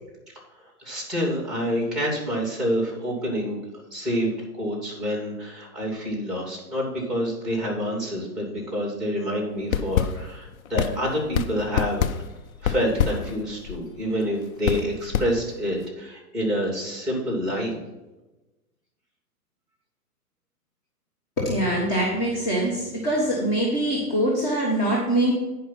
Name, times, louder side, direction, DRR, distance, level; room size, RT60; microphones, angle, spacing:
voice 1, 0.8-3.6 3.9-12.1 12.6-17.8, equal, ahead, -1 dB, 2.9 m, -27 dB
sound 1, 9.6-15.9, left 9 dB, 60° left, 0.7 m, -28 dB
voice 2, 21.4-25.3, right 1 dB, 20° left, -4 dB, 1.6 m, -23 dB
10.0 x 5.6 x 5.8 m, 1.1 s
hypercardioid pair, 155°, 47 cm